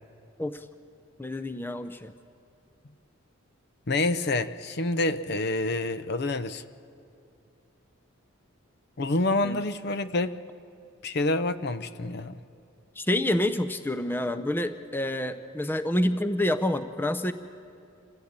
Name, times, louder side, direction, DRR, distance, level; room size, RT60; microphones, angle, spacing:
voice 1, 1.2-2.1 9.4-9.6 13.0-17.3, left 1 dB, 10° left, 10 dB, 0.6 m, -28 dB
voice 2, 3.9-6.6 9.0-10.4 11.0-12.4, left 2 dB, 50° left, 13 dB, 0.6 m, -27 dB
26.5 x 15.5 x 8.8 m, 2.6 s
head